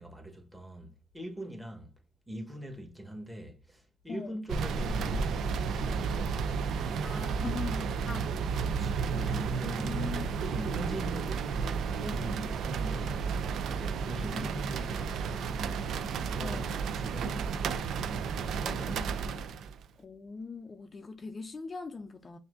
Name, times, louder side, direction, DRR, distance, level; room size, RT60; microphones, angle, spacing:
voice 1, 0.0-1.9 2.3-7.5 8.5-10.1 10.5-13.2 13.6-15.8 16.3-19.3, equal, 10° right, 1.2 m, -43 dB
sound 1, 4.5-19.8, right 5 dB, 75° right, 0.4 m, -32 dB
voice 2, 7.0-8.3 9.6-10.3 10.6-10.7 16.4-16.8 20.0-22.4, left 4 dB, 35° left, 0.4 m, -40 dB
5.7 x 2.6 x 2.5 m
cardioid pair, 90°, 0 cm